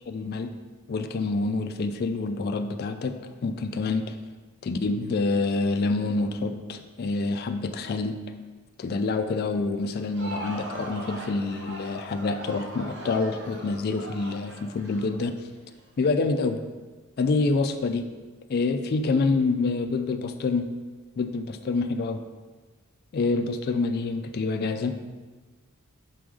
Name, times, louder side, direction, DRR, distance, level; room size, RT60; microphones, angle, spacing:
voice 1, 0.1-0.5 0.9-3.2 3.4-4.2 4.6-8.2 8.8-15.3 16.0-16.6 17.2-18.1 18.5-20.6 21.2-22.2 23.1-25.0, left 3 dB, 45° left, 7 dB, 0.3 m, -27 dB
Crowd, 9.9-15.8, right 1 dB, 55° right, 0.7 m, -40 dB
6.0 x 3.7 x 4.8 m, 1.3 s
head